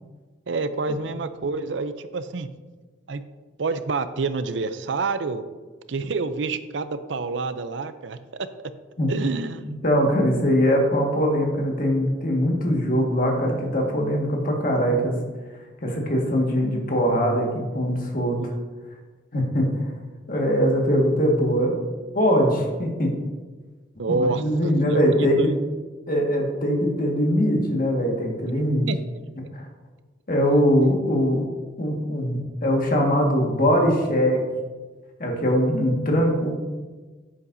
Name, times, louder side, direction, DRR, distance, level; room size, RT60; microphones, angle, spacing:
voice 1, 0.5-2.5 3.1-3.2 3.6-5.4 5.9-8.5 9.1-9.6 18.3-18.5 24.0-25.0 25.4-25.5 28.9-29.0, right 4 dB, 75° right, 11 dB, 0.6 m, -27 dB
voice 2, 9.6-15.2 15.8-17.5 17.7-18.4 19.3-19.9 20.3-21.7 22.1-23.2 24.1-25.5 26.1-28.9 29.5-29.6 30.3-31.5 31.8-34.4 35.2-36.7, equal, 50° left, 0 dB, 1.8 m, -22 dB
11.0 x 8.5 x 2.7 m, 1.3 s
head